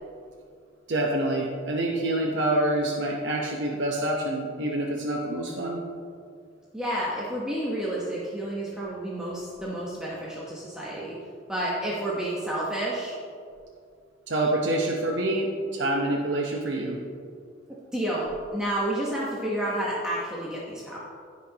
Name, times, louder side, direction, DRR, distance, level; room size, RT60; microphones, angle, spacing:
voice 1, 0.9-5.8 14.3-17.0, right 1 dB, 60° right, -2 dB, 0.9 m, -26 dB
voice 2, 6.7-11.2 11.5-13.2 17.9-21.0, right 1 dB, 5° right, -7 dB, 1.0 m, -30 dB
16.5 x 5.8 x 2.9 m, 2.3 s
head